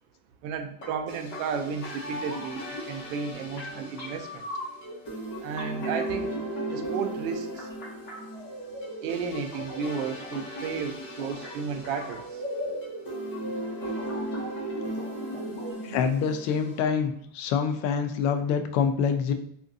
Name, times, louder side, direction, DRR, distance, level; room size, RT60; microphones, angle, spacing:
voice 1, 0.4-4.4 5.4-6.3 6.7-7.7 9.0-12.2, right 6 dB, 70° right, 7 dB, 0.6 m, -33 dB
sound 1, 0.8-16.8, equal, 25° left, 1.3 m, -36 dB
voice 2, 15.8-19.3, left 6 dB, 40° left, 7 dB, 0.4 m, -26 dB
3.6 x 2.6 x 2.6 m, 0.69 s
supercardioid pair, 125°, 42 cm